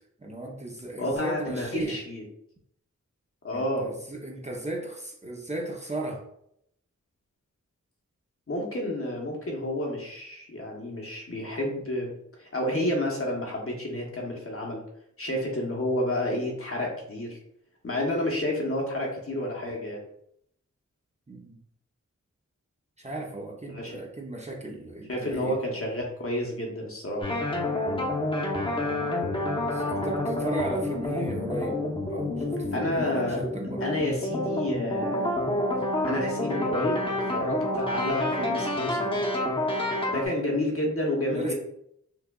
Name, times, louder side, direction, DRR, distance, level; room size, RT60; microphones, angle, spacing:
voice 1, 0.2-2.0 3.5-6.2 21.3-21.6 23.0-25.6 28.7-29.4 29.7-31.8 32.1-33.8 41.3-41.5, right 1 dB, 20° right, -1 dB, 0.7 m, -36 dB
voice 2, 1.0-2.2 3.4-3.9 8.5-12.1 12.4-14.8 15.2-17.4 17.8-20.0 23.7-24.0 25.1-27.3 32.7-33.4 33.8-35.4 36.0-39.1 40.1-41.5, left 1 dB, 45° left, -1 dB, 1.0 m, -30 dB
sound 1, 27.2-40.3, left 1 dB, 15° left, 0.9 m, -28 dB
4.7 x 2.4 x 2.3 m, 0.73 s
wide cardioid pair, 65°, 30 cm